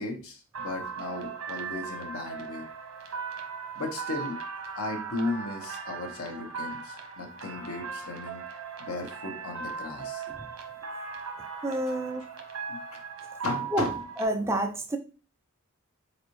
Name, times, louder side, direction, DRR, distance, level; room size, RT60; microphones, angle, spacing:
voice 1, 0.0-2.7 3.7-4.4 4.7-8.4 8.8-10.2 12.7-13.0 13.4-14.0, left 2 dB, 80° left, 1.1 m, -35 dB
sound 1, 0.5-14.3, right 6 dB, 85° right, 0.9 m, -38 dB
voice 2, 11.6-12.2 13.7-13.9 14.2-15.0, right 1 dB, 10° right, 0.5 m, -28 dB
4.1 x 4.0 x 3.0 m
head